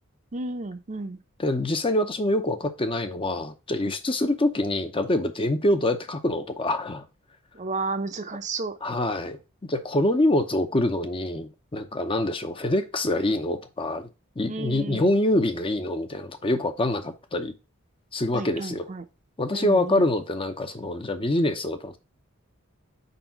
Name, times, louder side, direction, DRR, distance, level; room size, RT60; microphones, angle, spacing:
voice 1, 0.3-1.2 7.5-8.8 14.5-15.1 18.3-19.0 19.5-20.1, right 3 dB, 35° right, 0.6 m, -32 dB
voice 2, 1.4-7.0 8.8-9.4 9.7-14.1 14.4-17.5 18.1-18.9 19.4-22.0, left 1 dB, 25° left, 0.7 m, -25 dB
4.7 x 4.0 x 5.7 m
head